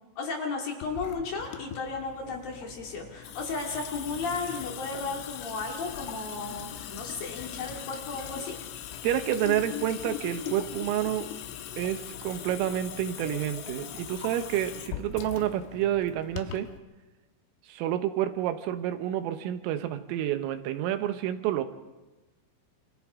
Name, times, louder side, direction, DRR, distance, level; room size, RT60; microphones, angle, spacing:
voice 1, 0.2-8.6, left 4 dB, 55° left, 0 dB, 3.5 m, -34 dB
Water tap faucet / Sink (filling or washing) / Drip, 0.8-16.8, left 11 dB, 80° left, 3.4 m, -40 dB
voice 2, 9.0-11.3 11.8-16.7 17.7-21.6, right 11 dB, 85° right, 9 dB, 3.7 m, -29 dB
28.5 x 27.0 x 3.7 m, 1.2 s
omnidirectional pair, 5.8 m